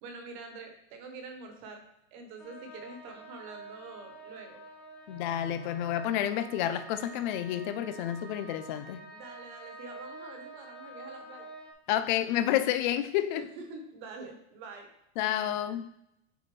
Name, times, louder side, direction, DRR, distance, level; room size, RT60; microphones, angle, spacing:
voice 1, 0.0-1.8 2.1-4.6 9.1-11.5 13.4-14.9, right 3 dB, 45° right, 1.4 m, -46 dB
sound 1, 2.4-11.7, right 2 dB, ahead, 0.8 m, -47 dB
voice 2, 5.1-9.0 11.9-13.4 15.2-15.9, left 11 dB, 45° left, 0.5 m, -30 dB
7.6 x 4.2 x 3.3 m
supercardioid pair, 145°, 35 cm